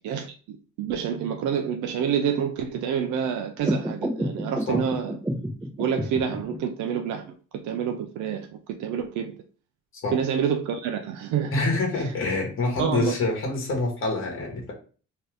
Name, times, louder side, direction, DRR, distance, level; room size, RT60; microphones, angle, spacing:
voice 1, 0.0-5.2 5.8-7.2 7.6-9.3 10.1-11.5 12.8-13.1, right 8 dB, 75° right, 0.5 m, -28 dB
sound 1, 3.6-6.6, equal, 10° right, 0.8 m, -30 dB
voice 2, 11.5-14.7, left 2 dB, 45° left, 1.2 m, -26 dB
2.8 x 2.3 x 3.2 m
cardioid pair, 90°, 30 cm